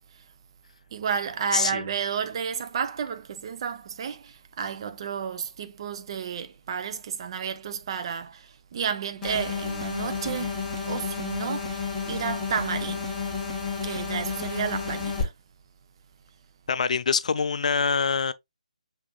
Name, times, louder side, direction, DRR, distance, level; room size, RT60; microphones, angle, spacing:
voice 1, 0.9-10.6 10.8-13.2 13.8-15.3, right 7 dB, 40° right, 0.6 m, -32 dB
voice 2, 1.5-1.9 16.7-18.3, left 5 dB, 60° left, 0.4 m, -24 dB
sound 1, 9.2-15.2, left 5 dB, 5° left, 1.6 m, -31 dB
6.2 x 3.4 x 2.3 m
figure-of-eight pair, 155°, 4 cm